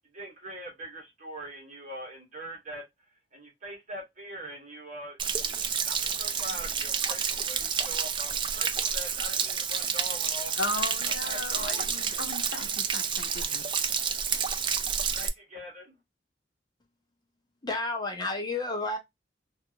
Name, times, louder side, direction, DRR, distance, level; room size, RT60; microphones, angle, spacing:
voice 1, 0.1-2.8 3.3-5.6 5.8-10.9 11.2-11.9 15.1-15.9, equal, 40° right, 1.4 m, -42 dB
Stream / Splash splatter / Trickle dribble, 5.2-15.3, right 7 dB, 25° right, 0.3 m, -29 dB
voice 2, 10.6-13.7, left 3 dB, 70° left, 0.7 m, -36 dB
voice 3, 17.6-19.0, left 2 dB, 20° left, 0.7 m, -31 dB
3.3 x 2.5 x 2.8 m
head